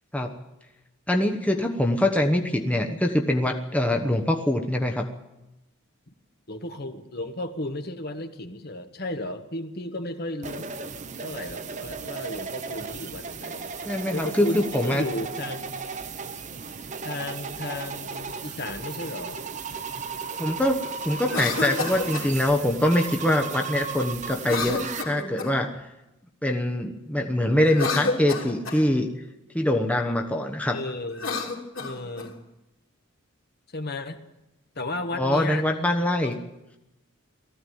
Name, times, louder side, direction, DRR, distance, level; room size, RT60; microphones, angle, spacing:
voice 1, 1.1-5.1 13.8-15.0 17.7-17.9 20.4-25.8 26.4-29.1 29.5-30.8 35.1-36.4, left 1 dB, 5° left, 3 dB, 1.0 m, -24 dB
voice 2, 6.5-10.7 11.2-13.7 14.1-15.8 17.0-19.4 30.7-31.3 31.8-32.3 33.7-34.2 34.7-35.7 36.2-36.4, left 1 dB, 50° left, 6 dB, 1.6 m, -34 dB
sound 1, 10.4-25.0, right 5 dB, 35° right, 1.0 m, -35 dB
Cough, 21.2-22.3 24.4-25.7 27.6-28.8 31.1-32.3, left 3 dB, 70° left, 3.3 m, -30 dB
19.0 x 15.0 x 9.4 m, 0.95 s
head